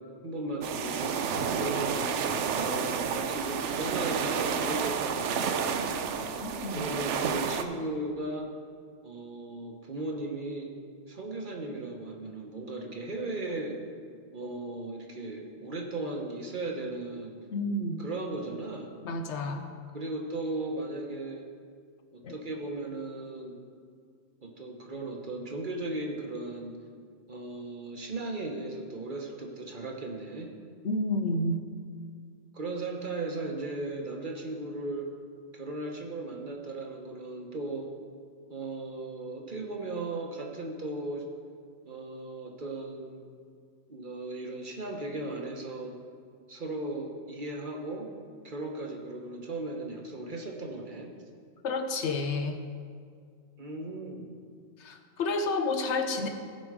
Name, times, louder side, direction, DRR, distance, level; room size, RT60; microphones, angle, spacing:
voice 1, 0.2-2.1 2.6-6.1 6.7-8.5 9.0-10.7 11.1-13.8 14.3-17.4 18.0-18.9 19.9-21.4 22.1-23.6 24.4-26.8 27.3-30.5 32.5-35.1 35.5-37.9 38.5-41.3 41.8-43.3 43.9-46.0 46.5-48.1 48.4-51.1 53.6-54.3, right 2 dB, 45° right, 2 dB, 1.1 m, -36 dB
sound 1, 0.6-7.6, right 6 dB, 80° right, 0.9 m, -30 dB
voice 2, 6.4-6.8 17.5-18.1 19.0-19.6 22.2-22.4 30.8-31.6 51.6-52.6 54.8-56.3, left 2 dB, 70° left, 6 dB, 1.1 m, -30 dB
15.5 x 5.3 x 4.8 m, 2.1 s
omnidirectional pair, 1.2 m